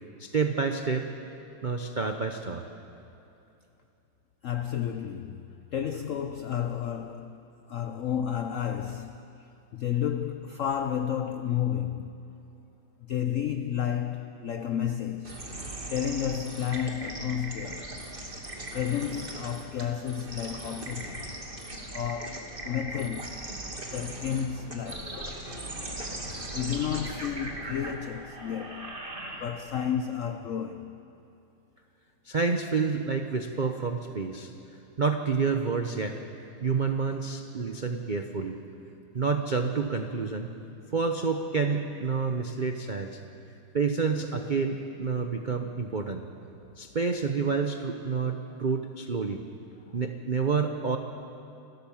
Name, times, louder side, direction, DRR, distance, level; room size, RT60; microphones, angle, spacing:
voice 1, 0.2-1.1 1.6-2.7 32.2-34.5 35.0-36.2 36.6-38.6 39.1-40.5 40.9-43.2 43.7-46.2 46.8-49.4 49.9-51.0, right 5 dB, 75° right, 0.4 m, -28 dB
voice 2, 4.4-9.2 9.7-12.2 13.0-15.4 15.9-18.0 18.7-21.2 21.9-29.0 29.3-31.0, left 9 dB, 85° left, 0.7 m, -32 dB
sound 1, 15.2-29.8, right 1 dB, 25° right, 2.1 m, -39 dB
29.0 x 12.5 x 7.2 m
omnidirectional pair, 2.2 m